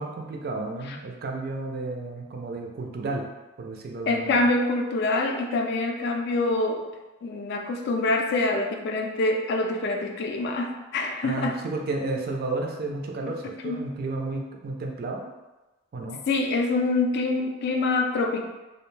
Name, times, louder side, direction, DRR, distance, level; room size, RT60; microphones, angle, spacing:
voice 1, 0.0-3.2 3.6-4.4 11.2-15.3 15.9-16.2, right 2 dB, 50° right, 1 dB, 0.3 m, -32 dB
voice 2, 4.1-6.8 7.2-11.6 13.6-13.8 16.3-18.4, left 2 dB, 55° left, 3 dB, 0.3 m, -25 dB
2.5 x 2.0 x 3.0 m, 1.1 s
head